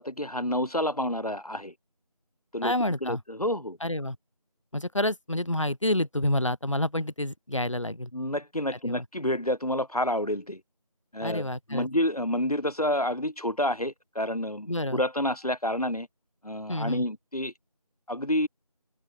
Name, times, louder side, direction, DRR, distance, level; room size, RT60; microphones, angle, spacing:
voice 1, 0.0-1.7 2.5-2.7 3.0-3.8 8.1-10.6 11.1-16.1 16.4-17.5 18.1-18.5, left 1 dB, 75° left, 7.4 m, -29 dB
voice 2, 2.6-3.2 3.8-4.2 4.7-8.1 8.9-9.0 11.2-11.9 14.7-15.0 16.7-17.0, left 1 dB, 55° left, 1.8 m, -28 dB
open air
figure-of-eight pair, 180°, 20 cm